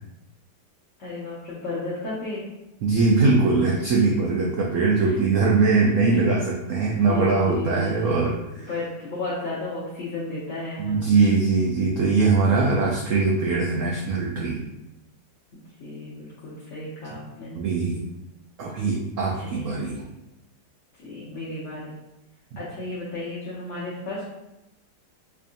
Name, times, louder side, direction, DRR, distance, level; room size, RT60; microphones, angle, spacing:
voice 1, 1.0-2.4 5.0-5.2 6.8-8.1 8.7-11.1 15.8-17.6 19.3-19.8 21.0-22.0 22.6-24.2, left 2 dB, 55° left, -8 dB, 1.1 m, -34 dB
voice 2, 2.8-8.7 10.8-14.6 17.6-18.0 18.6-20.0, right 4 dB, 70° right, -2 dB, 0.7 m, -21 dB
4.5 x 2.6 x 2.5 m, 0.95 s
omnidirectional pair, 1.8 m